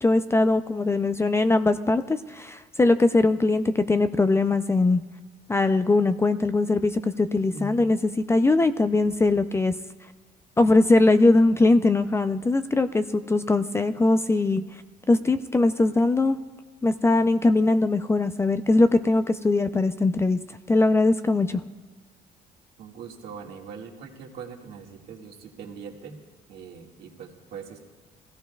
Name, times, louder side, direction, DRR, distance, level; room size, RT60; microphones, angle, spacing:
voice 1, 0.0-5.0 5.5-9.7 10.6-14.6 15.1-16.4 16.8-20.4 20.7-21.6, left 2 dB, 15° left, 10 dB, 0.4 m, -21 dB
voice 2, 7.5-8.0 22.8-26.2 26.5-27.8, right 5 dB, 70° right, -1 dB, 1.8 m, -41 dB
20.5 x 15.5 x 2.3 m, 1.3 s
cardioid pair, 110°, 17 cm